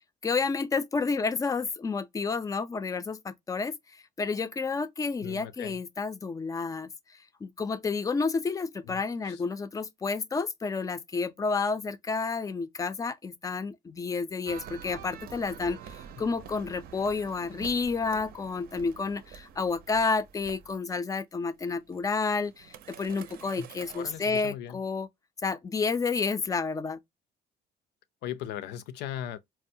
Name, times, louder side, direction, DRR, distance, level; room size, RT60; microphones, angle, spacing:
voice 1, 0.2-3.8 4.2-6.9 7.4-25.1 25.4-27.0, left 4 dB, 20° left, 0.4 m, -30 dB
voice 2, 5.2-5.8 8.8-9.4 23.6-23.7 23.9-24.8 28.2-29.4, left 10 dB, 85° left, 0.5 m, -38 dB
sound 1, 14.5-20.8 21.6-24.2, right 8 dB, 60° right, 0.6 m, -47 dB
4.4 x 2.0 x 2.6 m
cardioid pair, 110°, 17 cm